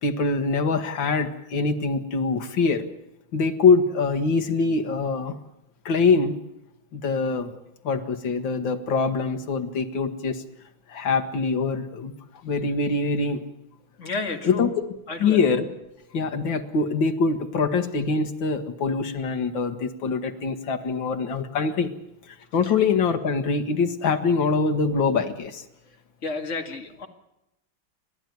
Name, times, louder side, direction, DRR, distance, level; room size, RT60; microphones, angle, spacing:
voice 1, 0.0-2.9 3.3-5.4 5.9-6.4 6.9-7.5 7.8-10.4 10.9-12.1 12.4-13.4 14.4-14.7 15.2-15.7 16.1-21.9 22.5-25.6, left 4 dB, 75° left, 6 dB, 2.3 m, -24 dB
voice 2, 14.0-14.7 15.1-15.4 22.6-22.7 26.2-27.1, left 3 dB, 40° left, 5 dB, 2.4 m, -31 dB
29.5 x 12.0 x 9.5 m, 0.87 s
omnidirectional pair, 2.1 m